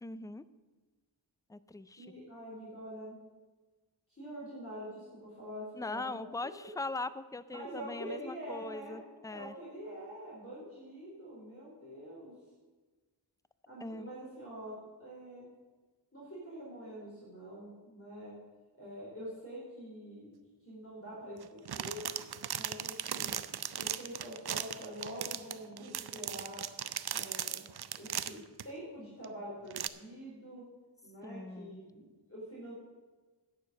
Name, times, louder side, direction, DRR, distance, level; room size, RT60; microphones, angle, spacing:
voice 1, 0.0-0.4 1.5-2.2 5.7-9.5 13.8-14.1 31.2-31.8, left 2 dB, 10° left, 15 dB, 0.4 m, -41 dB
voice 2, 1.9-3.2 4.1-6.3 6.6-6.7 7.5-9.0 9.3-12.3 13.7-14.7 15.0-15.5 16.1-18.3 18.7-20.3 20.6-22.0 22.5-23.4 23.8-26.6 27.1-27.6 28.0-28.4 28.6-30.6 31.0-32.7, equal, 30° left, -7 dB, 4.4 m, -45 dB
sound 1, 21.4-28.6 29.2-29.3 29.7-29.9, right 9 dB, 55° right, 0.5 m, -38 dB
9.7 x 6.6 x 7.6 m, 1.3 s
wide cardioid pair, 45°, 48 cm